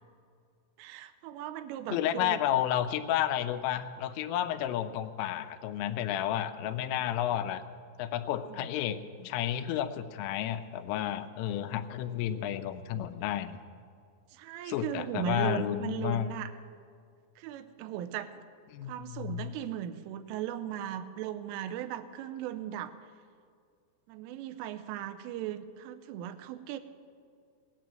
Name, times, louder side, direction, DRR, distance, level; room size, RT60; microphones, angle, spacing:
voice 1, 0.8-2.4 8.5-8.7 14.3-16.5 17.4-18.4 18.8-22.9 24.1-26.8, right 11 dB, 90° right, 9 dB, 3.4 m, -37 dB
voice 2, 1.9-7.6 8.0-13.6 14.7-16.3 18.7-19.5, left 11 dB, 90° left, 10 dB, 3.3 m, -31 dB
18.5 x 9.3 x 7.6 m, 2.3 s
omnidirectional pair, 5.7 m